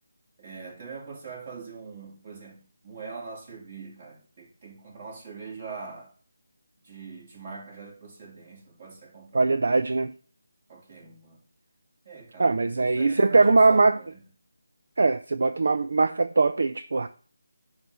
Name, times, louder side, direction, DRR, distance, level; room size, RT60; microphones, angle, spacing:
voice 1, 0.4-6.1 6.8-9.5 10.7-11.4 12.1-12.5 12.8-14.1, right 5 dB, 35° right, 3.6 m, -43 dB
voice 2, 9.3-10.1 12.4-14.0 15.0-17.1, right 3 dB, 60° right, 0.5 m, -21 dB
10.0 x 3.4 x 6.8 m
figure-of-eight pair, 160°, 0 cm